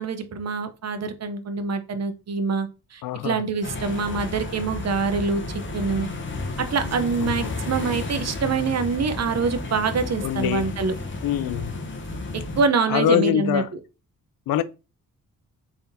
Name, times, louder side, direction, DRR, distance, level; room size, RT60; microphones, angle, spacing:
voice 1, 0.0-6.1 6.6-10.9 12.6-13.6, right 4 dB, 45° right, 0.8 m, -25 dB
voice 2, 3.0-3.4 7.2-7.6 10.2-10.7 11.2-11.8 12.9-13.7 14.5-14.6, left 12 dB, 65° left, 0.5 m, -24 dB
sound 1, 3.6-12.6, left 2 dB, 30° left, 0.9 m, -32 dB
3.6 x 3.5 x 2.7 m
cardioid pair, 75°, 37 cm